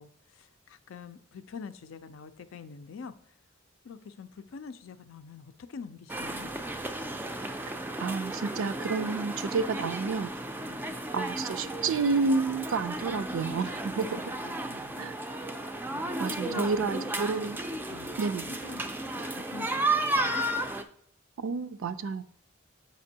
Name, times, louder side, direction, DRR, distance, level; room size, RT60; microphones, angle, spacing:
voice 1, 0.0-3.1 3.8-6.5 10.6-10.9 14.0-15.0 15.9-17.1 17.9-20.4, left 5 dB, 70° left, 11 dB, 0.4 m, -46 dB
sound 1, 6.1-20.8, right 1 dB, 10° right, 0.3 m, -33 dB
voice 2, 8.0-10.3 11.1-14.2 15.0-15.2 16.2-17.6 18.2-18.5 21.4-22.2, right 4 dB, 75° right, 13 dB, 0.4 m, -30 dB
7.5 x 5.2 x 2.8 m, 0.66 s
head